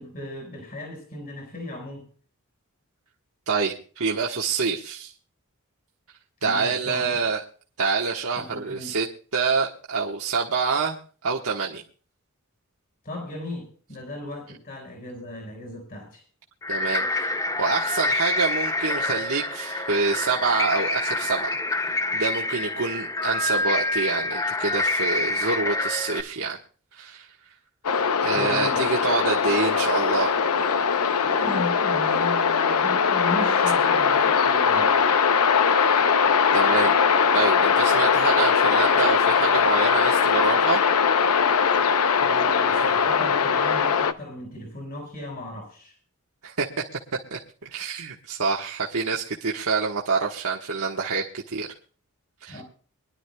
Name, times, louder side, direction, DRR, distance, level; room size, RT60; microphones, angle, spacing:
voice 1, 0.0-2.1 6.4-7.2 8.4-8.9 13.0-16.2 28.3-28.9 31.2-35.0 42.2-46.0 52.5-52.6, left 1 dB, 40° left, 2 dB, 5.2 m, -36 dB
voice 2, 3.5-5.1 6.4-7.4 7.8-9.1 9.3-11.8 16.7-17.3 17.6-21.5 22.1-26.6 26.9-27.3 28.2-30.3 36.5-37.0 37.3-40.8 46.4-46.7 47.3-51.7 52.4-52.6, right 4 dB, 75° right, -2 dB, 1.3 m, -26 dB
sound 1, 16.6-26.2, left 2 dB, 15° left, 0.5 m, -27 dB
sound 2, 27.8-44.1, left 6 dB, 80° left, 0.7 m, -21 dB
24.5 x 11.5 x 2.3 m, 0.40 s
head